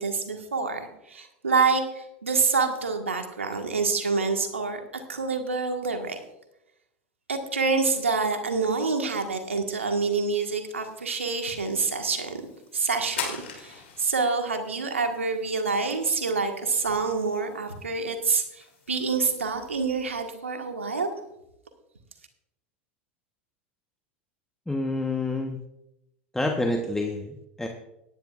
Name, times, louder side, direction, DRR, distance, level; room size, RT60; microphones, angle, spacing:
voice 1, 0.0-4.8 5.1-6.2 7.3-12.4 12.7-21.1, right 4 dB, 85° right, 5 dB, 1.6 m, -27 dB
sound 1, 10.9-20.4, left 7 dB, 75° left, 3.0 m, -44 dB
voice 2, 24.7-25.6 26.3-27.7, left 2 dB, 5° left, 2 dB, 1.1 m, -28 dB
18.0 x 10.5 x 2.5 m, 0.85 s
hypercardioid pair, 85°, 7 cm